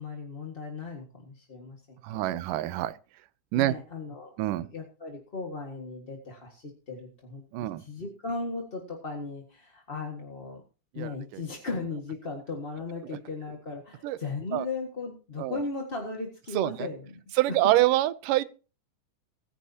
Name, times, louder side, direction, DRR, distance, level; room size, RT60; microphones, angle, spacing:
voice 1, 0.0-2.0 2.3-2.4 3.5-10.6 10.9-17.2 17.5-17.6, left 3 dB, 25° left, 1.3 m, -37 dB
voice 2, 2.0-2.9 3.5-3.7 4.4-4.7 7.5-7.8 11.0-11.1 14.0-14.2 14.5-14.7 15.4-15.6 16.5-16.9 17.4-18.4, right 15 dB, 85° right, 2.3 m, -25 dB
22.5 x 10.5 x 2.9 m
omnidirectional pair, 3.7 m